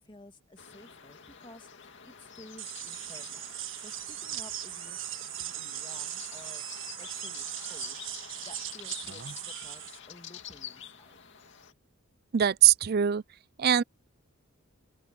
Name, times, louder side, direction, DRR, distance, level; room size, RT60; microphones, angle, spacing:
voice 1, 0.0-3.5 3.8-6.7 7.0-8.1 8.4-11.2, left 2 dB, 20° left, 2.3 m, -53 dB
sound 1, 0.6-11.7, left 8 dB, 55° left, 2.5 m, -48 dB
sound 2, 2.6-10.0, right 13 dB, 60° right, 1.7 m, -39 dB
voice 2, 12.3-13.2 13.6-13.8, right 10 dB, 45° right, 0.4 m, -22 dB
open air
head